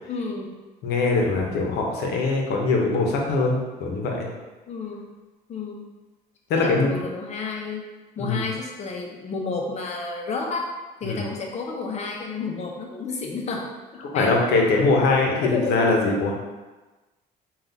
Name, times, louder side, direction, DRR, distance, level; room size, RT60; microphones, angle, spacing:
voice 1, 0.1-0.5 4.7-5.1 5.5-5.9 6.5-7.9 8.2-10.7 11.0-13.7 13.9-14.4 15.4-15.8, left 4 dB, 40° left, 0 dB, 0.7 m, -31 dB
voice 2, 0.8-4.3 6.5-7.0 8.2-8.4 11.0-11.2 14.1-16.3, left 3 dB, 75° left, 0 dB, 0.8 m, -22 dB
3.8 x 2.4 x 3.9 m, 1.2 s
cardioid pair, 110°, 17 cm